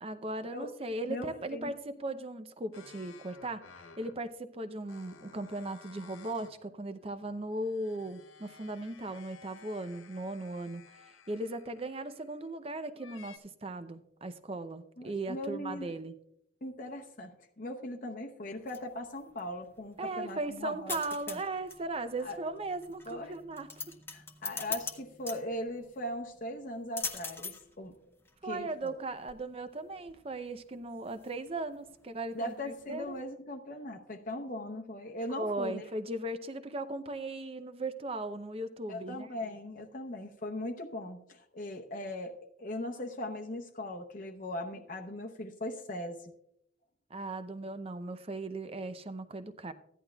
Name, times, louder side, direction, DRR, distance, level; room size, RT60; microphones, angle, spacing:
voice 1, 0.0-16.1 20.0-23.7 28.4-33.0 35.3-39.3 47.1-49.7, right 2 dB, 30° right, 11 dB, 0.6 m, -38 dB
voice 2, 1.1-1.7 15.0-15.9 16.6-21.0 21.3-21.4 22.2-22.4 23.1-23.4 24.1-28.0 28.4-28.9 32.3-35.9 38.9-46.3, left 1 dB, 45° left, 2 dB, 0.8 m, -39 dB
sound 1, 2.7-4.3 4.8-6.6 7.0-12.5 13.0-13.4, left 6 dB, 90° left, 0.8 m, -56 dB
sound 2, 18.4-33.2, left 4 dB, 10° left, 0.7 m, -44 dB
sound 3, 21.5-26.6, left 2 dB, 60° right, 2.0 m, -62 dB
15.0 x 11.0 x 2.3 m, 0.75 s
head